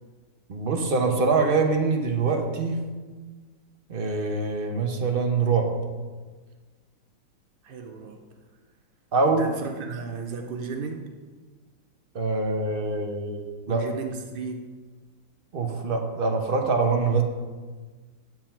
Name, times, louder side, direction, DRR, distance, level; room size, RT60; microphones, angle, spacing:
voice 1, 0.5-2.8 3.9-5.7 9.1-9.5 12.1-13.8 15.5-17.2, right 4 dB, 40° right, 3 dB, 0.9 m, -24 dB
voice 2, 7.6-8.2 9.4-11.1 13.7-14.7, right 5 dB, 75° right, 4 dB, 0.4 m, -34 dB
9.4 x 7.6 x 4.4 m, 1.4 s
omnidirectional pair, 2.0 m